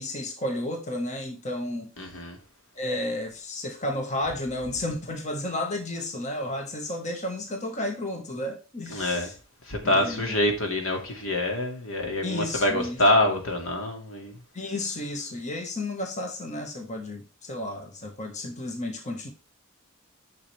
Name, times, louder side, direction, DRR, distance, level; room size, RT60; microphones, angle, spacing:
voice 1, 0.0-1.9 2.7-9.3 9.8-10.2 12.2-13.0 14.5-19.3, left 1 dB, 35° left, 1.5 m, -32 dB
voice 2, 2.0-2.4 8.9-9.3 9.7-14.4, left 1 dB, 80° left, 2.3 m, -25 dB
9.9 x 5.9 x 3.4 m
head